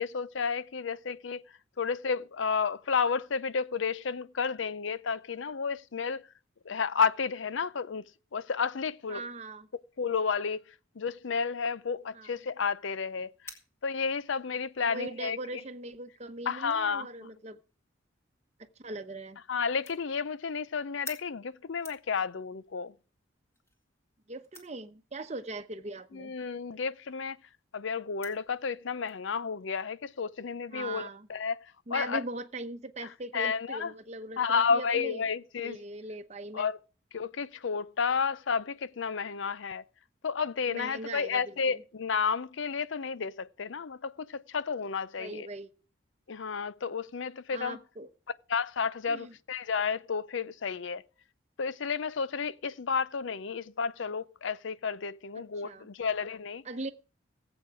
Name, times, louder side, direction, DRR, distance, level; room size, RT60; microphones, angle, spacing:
voice 1, 0.0-1.4 1.8-6.2 6.7-8.0 8.3-9.2 10.0-10.6 11.0-13.3 13.8-15.4 16.5-17.1 19.5-22.9 26.1-27.4 27.7-32.2 33.3-33.9 34.4-35.8 36.5-36.8 37.1-39.8 40.2-45.5 46.3-47.8 48.5-51.0 51.6-56.6, left 5 dB, 70° left, 0.6 m, -31 dB
voice 2, 9.1-9.7 12.1-12.3 14.8-17.6 18.8-19.4 24.3-26.3 30.7-31.3 31.9-35.2 35.6-36.7 40.7-41.8 45.2-45.7 47.5-48.1 49.1-49.3 55.4-55.9 56.6-56.9, right 2 dB, 35° right, 0.9 m, -40 dB
sound 1, 11.4-29.2, left 1 dB, 15° left, 1.9 m, -55 dB
17.5 x 8.0 x 4.8 m
head